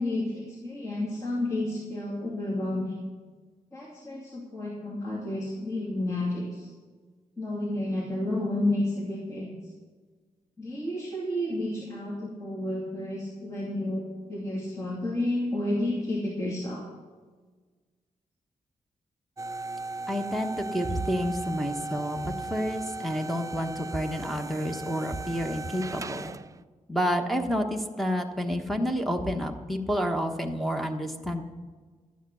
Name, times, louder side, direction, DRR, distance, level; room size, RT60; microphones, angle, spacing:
voice 1, 0.0-2.9 3.7-6.7 7.4-9.5 10.6-16.8, left 1 dB, 25° left, -6 dB, 2.7 m, -31 dB
sound 1, 19.4-26.6, right 3 dB, 25° right, 0.3 m, -37 dB
voice 2, 20.1-26.3 26.9-31.4, equal, ahead, 2 dB, 1.1 m, -29 dB
12.5 x 9.3 x 6.2 m, 1.4 s
wide cardioid pair, 115°, 13 cm